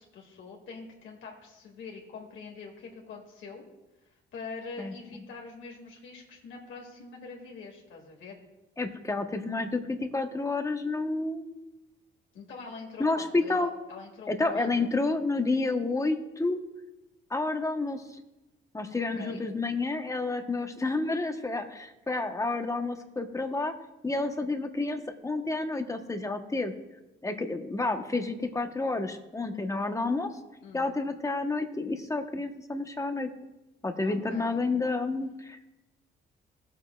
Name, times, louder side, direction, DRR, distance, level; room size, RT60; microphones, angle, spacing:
voice 1, 0.0-3.6 4.3-8.4 12.3-14.9 19.2-19.4 30.6-31.0 34.0-34.7, left 4 dB, 75° left, -1 dB, 2.0 m, -44 dB
voice 2, 8.8-11.7 13.0-13.7 14.3-16.6 17.3-18.2 18.7-23.7 24.0-26.7 27.2-30.3 30.7-33.3 33.8-35.7, left 3 dB, 15° left, 6 dB, 0.9 m, -30 dB
16.5 x 7.3 x 2.3 m, 1.0 s
cardioid pair, 90°, 20 cm